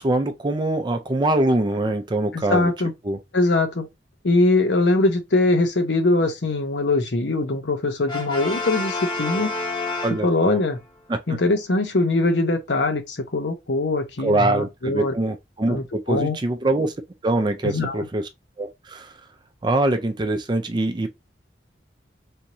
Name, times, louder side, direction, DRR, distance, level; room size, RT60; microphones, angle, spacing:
voice 1, 0.0-2.7 3.0-3.2 10.0-10.6 11.1-11.2 14.2-16.9 17.2-18.3 18.6-19.1 19.6-21.1, right 2 dB, 25° right, 0.4 m, -23 dB
voice 2, 2.3-2.9 3.3-3.9 4.2-9.5 10.2-10.8 11.3-15.1 15.7-16.4 17.6-18.1, left 2 dB, 85° left, 0.9 m, -22 dB
Brass instrument, 8.1-10.7, left 3 dB, 30° left, 0.9 m, -29 dB
3.5 x 3.0 x 2.7 m
head